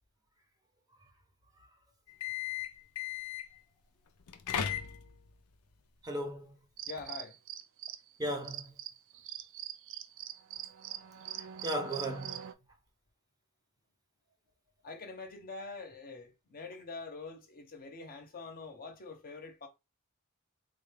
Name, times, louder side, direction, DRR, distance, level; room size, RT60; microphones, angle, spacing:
sound 1, 2.1-3.6 4.2-5.3, left 9 dB, 80° left, 0.5 m, -36 dB
voice 1, 6.0-6.5 8.2-8.7 11.4-12.4, right 1 dB, 15° right, 0.7 m, -36 dB
sound 2, 6.8-8.1 8.4-12.5, right 11 dB, 60° right, 0.4 m, -43 dB
voice 2, 6.9-7.4 14.8-19.7, left 3 dB, 40° left, 0.8 m, -45 dB
3.9 x 2.3 x 3.3 m
head